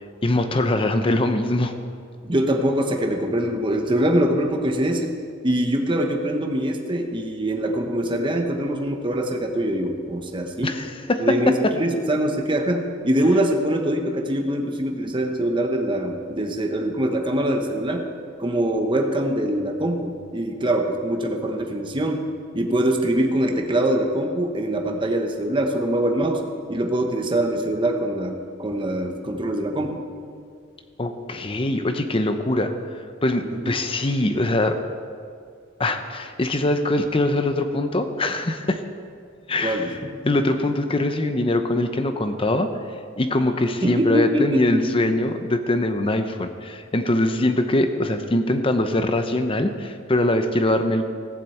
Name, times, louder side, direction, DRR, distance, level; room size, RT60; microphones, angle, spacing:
voice 1, 0.2-1.7 10.6-11.7 31.0-32.7 33.2-34.8 35.8-38.8 39.5-39.9 40.2-42.7 43.2-51.1, left 1 dB, 25° left, 7 dB, 0.7 m, -22 dB
voice 2, 2.2-5.1 5.4-10.8 11.2-18.1 18.4-22.2 22.5-26.4 26.7-30.0 33.4-33.7 39.6-40.1 43.8-44.8, right 1 dB, 25° right, 3 dB, 1.1 m, -23 dB
15.5 x 7.4 x 7.9 m, 2.2 s
head